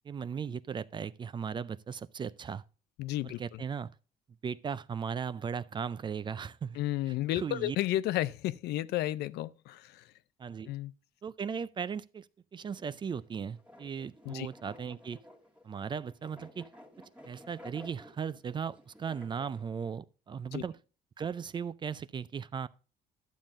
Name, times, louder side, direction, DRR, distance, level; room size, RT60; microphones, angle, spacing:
voice 1, 0.0-2.6 3.2-3.9 4.4-6.8 7.1-7.8 10.4-10.7 11.2-12.3 12.5-15.2 15.6-16.7 17.2-20.8 21.2-22.7, right 6 dB, 30° right, 0.4 m, -37 dB
voice 2, 3.0-3.4 6.8-10.0 10.7-10.9 14.3-14.5 20.5-20.6, left 15 dB, 75° left, 0.5 m, -32 dB
sound 1, 12.7-19.6, left 1 dB, 5° right, 1.5 m, -54 dB
11.5 x 7.3 x 2.5 m
cardioid pair, 110°, 17 cm